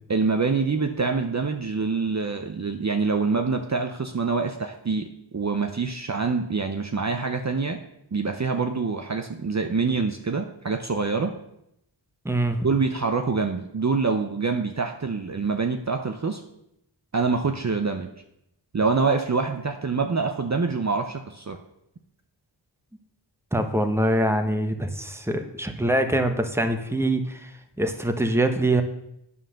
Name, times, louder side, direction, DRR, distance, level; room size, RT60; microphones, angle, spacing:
voice 1, 0.1-7.8 8.1-11.3 12.6-16.4 17.1-18.1 18.7-21.6, right 4 dB, 35° right, 5 dB, 0.7 m, -25 dB
voice 2, 12.2-12.7 17.5-17.6 23.5-27.5 27.8-28.8, right 1 dB, 5° right, 6 dB, 1.0 m, -24 dB
9.2 x 5.6 x 6.4 m, 0.81 s
wide cardioid pair, 65°, 46 cm